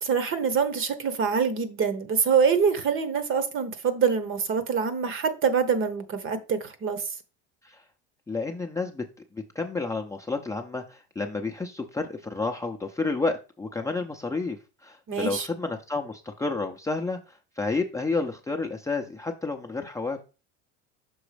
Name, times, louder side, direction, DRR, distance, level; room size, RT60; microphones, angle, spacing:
voice 1, 0.0-7.0 15.1-15.5, right 6 dB, 40° right, 1.1 m, -25 dB
voice 2, 8.3-9.0 9.3-14.6 14.8-20.2, left 3 dB, 10° left, 0.7 m, -30 dB
6.3 x 3.8 x 5.0 m
supercardioid pair, 115°, 33 cm